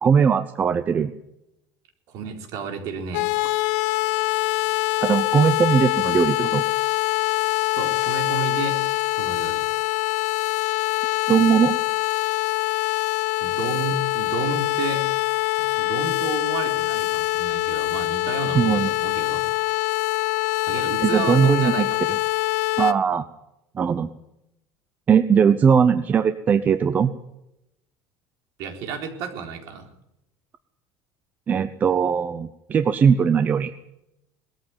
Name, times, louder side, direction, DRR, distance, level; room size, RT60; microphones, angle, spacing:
voice 1, 0.0-1.1 5.0-6.6 11.3-11.8 18.5-18.9 21.0-21.9 22.8-23.3 23.7-24.1 25.1-27.1 31.5-33.7, right 7 dB, 20° right, 11 dB, 0.7 m, -19 dB
voice 2, 2.1-3.3 7.7-8.8 9.1-9.6 13.4-15.1 15.6-19.5 20.7-22.0 28.6-29.9, right 5 dB, 50° right, 4 dB, 4.1 m, -31 dB
sound 1, 3.1-22.9, left 21 dB, 75° left, 0.8 m, -24 dB
20.5 x 14.0 x 9.4 m, 0.86 s
cardioid pair, 165°, 7 cm